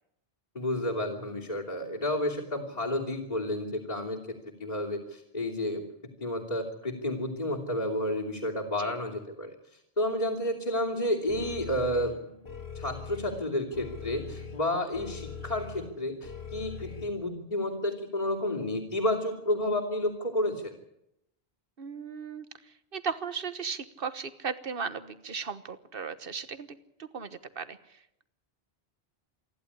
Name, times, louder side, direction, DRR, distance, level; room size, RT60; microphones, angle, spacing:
voice 1, 0.5-4.2 4.6-5.8 6.2-9.5 10.0-12.4 12.7-20.7, left 1 dB, 40° left, 2 dB, 3.2 m, -31 dB
sound 1, 11.3-17.1, left 5 dB, 85° left, 2.2 m, -42 dB
voice 2, 21.8-28.2, right 6 dB, 65° right, 13 dB, 1.5 m, -37 dB
27.5 x 11.5 x 9.9 m, 0.80 s
omnidirectional pair, 1.0 m